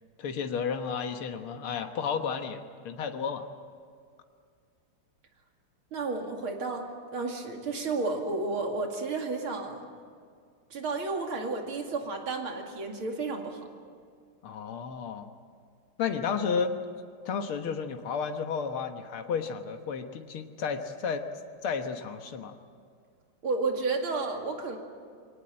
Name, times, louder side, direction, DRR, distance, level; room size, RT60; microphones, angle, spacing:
voice 1, 0.2-3.5 14.4-15.3 16.0-16.8 17.3-21.3 21.6-22.6, left 6 dB, 80° left, 6 dB, 2.2 m, -32 dB
voice 2, 5.9-6.9 7.1-9.8 10.7-13.6 23.4-24.8, right 3 dB, 75° right, 2 dB, 3.2 m, -32 dB
23.0 x 18.5 x 8.9 m, 2.2 s
omnidirectional pair, 2.3 m